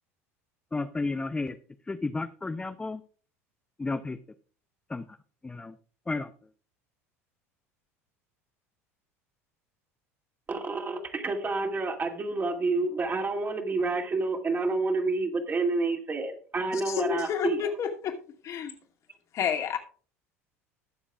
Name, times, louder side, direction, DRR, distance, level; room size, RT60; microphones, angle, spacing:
voice 1, 0.7-1.5 1.9-3.0 3.8-4.2 4.9-5.0 5.4-5.7 6.1-6.3, left 3 dB, 15° left, 9 dB, 0.7 m, -32 dB
voice 2, 10.5-17.6, right 3 dB, 25° right, 3 dB, 2.5 m, -29 dB
voice 3, 16.7-18.2 18.4-18.7 19.3-19.8, left 8 dB, 45° left, 2 dB, 2.5 m, -30 dB
21.0 x 7.1 x 2.4 m, 0.41 s
figure-of-eight pair, 70°, 8 cm